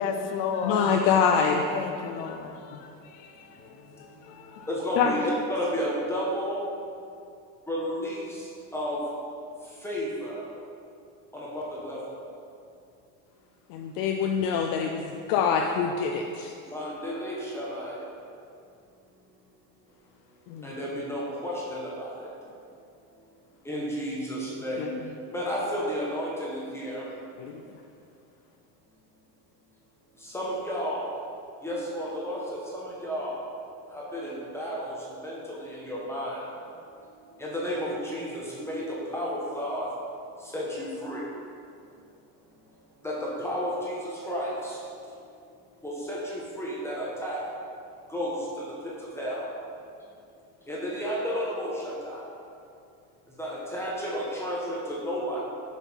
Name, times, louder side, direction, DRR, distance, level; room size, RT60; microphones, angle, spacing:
voice 1, 0.0-1.0 1.7-4.7, left 6 dB, 85° left, 0.9 m, -34 dB
voice 2, 0.6-1.6 5.0-5.1 13.7-16.5 20.5-20.7 24.8-25.0 27.4-27.5, left 6 dB, 70° left, 0.6 m, -25 dB
voice 3, 4.7-6.6 7.7-9.0 9.8-10.4 11.3-12.2 16.7-18.0 20.6-22.3 23.6-24.8 25.3-27.1 30.2-31.0 31.6-33.3 33.9-36.4 37.4-39.9 40.4-41.2 43.0-44.8 45.8-47.4 48.1-49.4 50.7-52.2 53.4-55.4, equal, 5° left, 1.2 m, -32 dB
7.9 x 6.0 x 4.5 m
cardioid pair, 150°, 36 cm